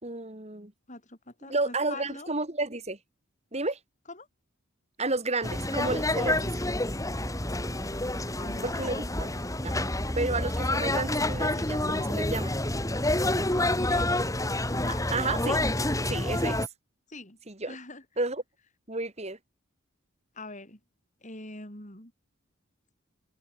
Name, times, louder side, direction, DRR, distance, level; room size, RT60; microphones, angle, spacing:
voice 1, 0.0-0.7 1.5-3.0 3.5-3.8 5.0-6.5 8.6-9.3 9.6-9.7 10.2-12.5 15.1-15.6 16.1-16.6 17.5-17.8 18.2-18.4 18.9-19.4, right 2 dB, 30° right, 3.0 m, -31 dB
voice 2, 0.9-2.3 4.1-4.3 8.4-9.4 13.7-14.3 14.7-15.1 17.1-17.4 17.7-18.0 20.3-20.8 21.2-22.1, left 2 dB, 35° left, 7.8 m, -43 dB
sound 1, 5.4-16.7, left 1 dB, 15° left, 3.4 m, -28 dB
open air
head